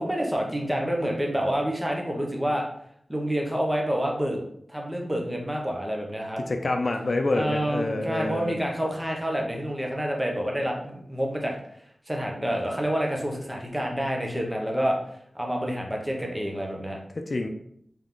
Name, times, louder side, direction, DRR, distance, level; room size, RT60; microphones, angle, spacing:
voice 1, 0.0-2.7 3.1-4.4 4.7-6.4 7.3-11.5 12.1-15.0 15.3-17.0, equal, 10° right, 0 dB, 1.1 m, -28 dB
voice 2, 6.5-8.6 17.1-17.5, left 2 dB, 55° left, 4 dB, 0.5 m, -27 dB
3.7 x 3.0 x 3.7 m, 0.69 s
cardioid pair, 45°, 0 cm